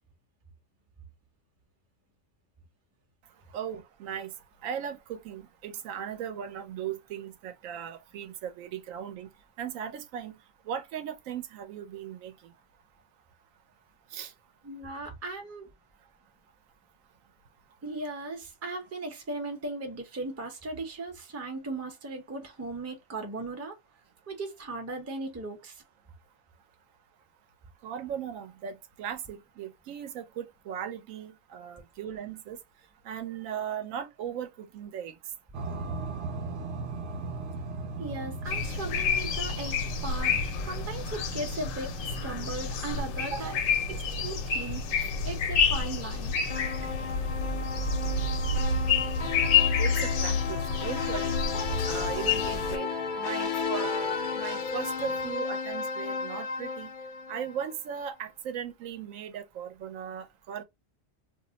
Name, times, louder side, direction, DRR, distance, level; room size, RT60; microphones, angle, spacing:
voice 1, 3.5-4.3 4.6-9.3 9.6-10.3 10.7-12.3 14.1-14.3 27.8-32.6 33.0-35.1 43.3-43.6 45.0-45.1 49.8-49.9 50.2-51.4 51.9-52.9 53.2-56.9 57.3-60.6, right 8 dB, 90° right, 1.0 m, -37 dB
voice 2, 14.6-15.7 17.8-23.8 24.3-25.8 38.0-40.4 40.7-43.6 44.2-44.8 45.2-46.3, right 2 dB, 20° right, 0.4 m, -37 dB
sound 1, 35.5-55.3, right 3 dB, 70° right, 0.8 m, -42 dB
sound 2, 38.5-52.8, left 5 dB, 85° left, 1.0 m, -29 dB
sound 3, 46.5-57.7, left 5 dB, 60° left, 0.5 m, -34 dB
2.6 x 2.1 x 3.7 m
omnidirectional pair, 1.4 m